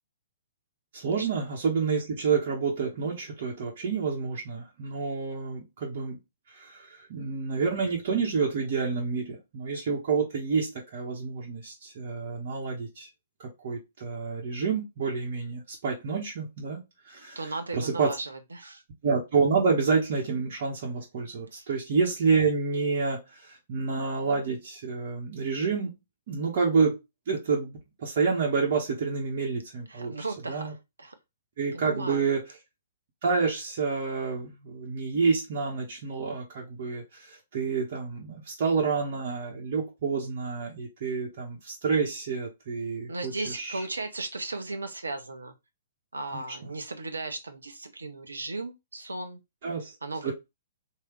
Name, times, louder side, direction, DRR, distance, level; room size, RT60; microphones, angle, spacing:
voice 1, 0.9-6.2 6.5-13.1 13.4-16.8 17.1-17.4 17.7-18.1 19.0-25.9 26.3-27.0 27.3-30.1 30.5-30.7 31.6-32.4 33.2-43.8 46.3-46.4 49.6-49.9 50.2-50.3, right 5 dB, 45° right, 1.1 m, -28 dB
voice 2, 17.4-18.8 21.5-21.7 29.9-31.1 31.7-32.2 43.1-45.5 46.1-49.4 50.0-50.3, right 3 dB, 75° right, 0.6 m, -36 dB
3.3 x 2.8 x 3.1 m
figure-of-eight pair, 115°, 0 cm